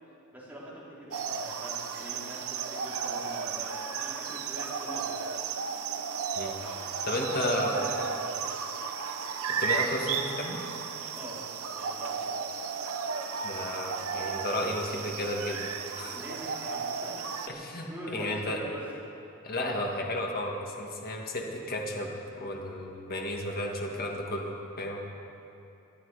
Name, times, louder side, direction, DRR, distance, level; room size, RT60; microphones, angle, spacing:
voice 1, 0.3-5.3 6.6-8.2 11.1-11.4 11.7-12.4 16.0-18.9, equal, 10° right, -7 dB, 3.5 m, -44 dB
sound 1, 1.1-17.5, right 6 dB, 70° right, 0.9 m, -34 dB
voice 2, 7.1-7.9 9.6-10.6 13.4-15.6 16.0-16.2 17.5-18.6 19.4-22.1 22.4-25.0, left 1 dB, 45° left, 0 dB, 1.8 m, -33 dB
20.0 x 11.5 x 4.9 m, 2.9 s
head